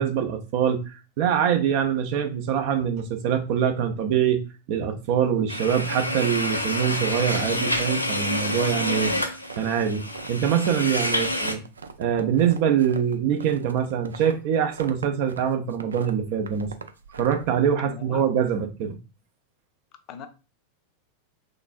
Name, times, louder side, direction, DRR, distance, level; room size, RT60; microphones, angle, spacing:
voice 1, 0.0-4.4 4.7-11.6 12.0-16.7 17.1-19.0, right 8 dB, 45° right, 0.7 m, -24 dB
sound 1, 5.5-11.5, left 1 dB, 85° left, 0.6 m, -28 dB
sound 2, 9.4-10.8 11.1-15.4 15.7-17.7, right 5 dB, 70° right, 0.4 m, -40 dB
voice 2, 17.8-18.2 20.1-20.3, left 7 dB, 35° left, 0.6 m, -40 dB
4.0 x 3.3 x 2.5 m
figure-of-eight pair, 90°, 0 cm